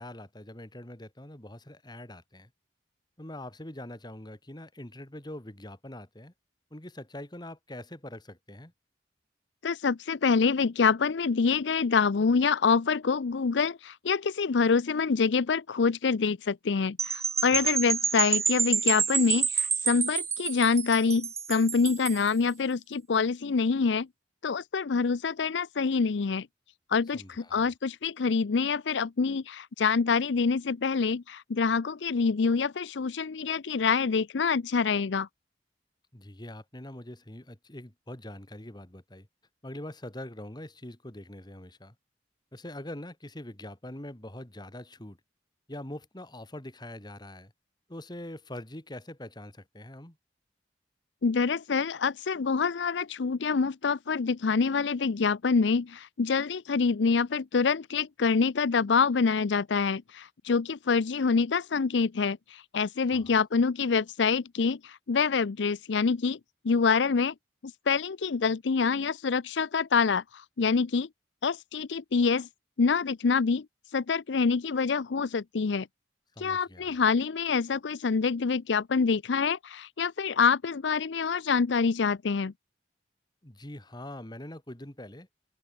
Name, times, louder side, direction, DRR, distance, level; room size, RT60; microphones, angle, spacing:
voice 1, 0.0-2.5 3.2-6.3 6.7-8.7 17.5-17.8 27.1-27.7 36.1-39.3 39.6-41.9 42.5-45.2 45.7-47.5 47.9-50.2 63.1-63.4 76.4-77.0 83.4-85.3, left 1 dB, 25° left, 2.5 m, -43 dB
voice 2, 9.6-24.1 24.4-26.5 26.9-35.3 51.2-66.4 66.6-67.3 67.9-71.1 71.4-72.5 72.8-73.7 73.9-75.9 76.4-82.5, left 5 dB, 75° left, 0.5 m, -26 dB
sound 1, 17.0-22.3, right 6 dB, 15° right, 0.4 m, -28 dB
head